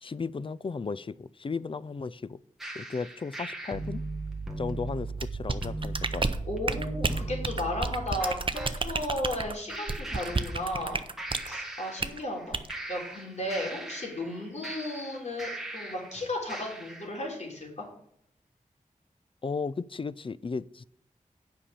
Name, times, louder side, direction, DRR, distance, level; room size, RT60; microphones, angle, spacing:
voice 1, 0.0-2.4 2.7-4.0 4.6-6.3 19.4-20.8, left 4 dB, 40° left, 0.4 m, -35 dB
sound 1, 2.6-8.7 9.7-10.9 11.2-12.4 12.7-16.1 16.5-17.1, right 2 dB, 5° right, 1.8 m, -38 dB
sound 2, 5.2-11.5 12.0-12.2 12.5-12.7, right 3 dB, 40° right, 0.7 m, -31 dB
voice 2, 6.4-8.4 8.8-11.0 11.4-12.6 12.9-17.9, left 1 dB, 55° left, 3.7 m, -34 dB
8.6 x 5.7 x 6.9 m
wide cardioid pair, 75°, 14 cm